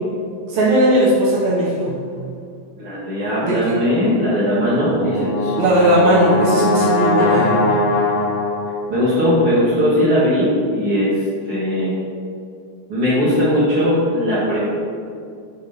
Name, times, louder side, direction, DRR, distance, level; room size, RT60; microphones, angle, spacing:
voice 1, 0.5-2.0 3.4-3.8 5.6-7.7, right 1 dB, 70° right, -5 dB, 2.2 m, -17 dB
voice 2, 2.8-5.6 8.9-11.2 11.5-11.9 12.9-14.6, equal, 55° right, -10 dB, 1.8 m, -18 dB
Brass instrument, 4.6-8.9, left 2 dB, 90° left, 0.8 m, -20 dB
7.1 x 3.0 x 5.2 m, 2.3 s
omnidirectional pair, 3.7 m